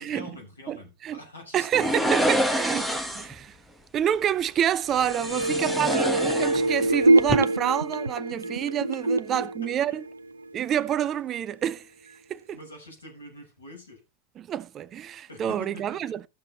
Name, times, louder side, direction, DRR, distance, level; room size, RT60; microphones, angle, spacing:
voice 1, 0.0-2.4 5.2-6.0 9.3-9.7 12.5-14.0 15.3-16.1, left 2 dB, 75° left, 6.8 m, -45 dB
voice 2, 0.7-1.2 1.5-3.6 3.9-10.0 10.5-11.9 12.3-12.6 14.4-16.2, right 10 dB, 30° right, 0.5 m, -28 dB
sound 1, 1.7-3.4 5.0-6.9 7.2-7.4, right 1 dB, ahead, 1.8 m, -27 dB
sound 2, 4.9-10.6 10.9-11.0, right 2 dB, 80° right, 0.5 m, -25 dB
15.0 x 7.1 x 4.0 m
figure-of-eight pair, 90°, 0 cm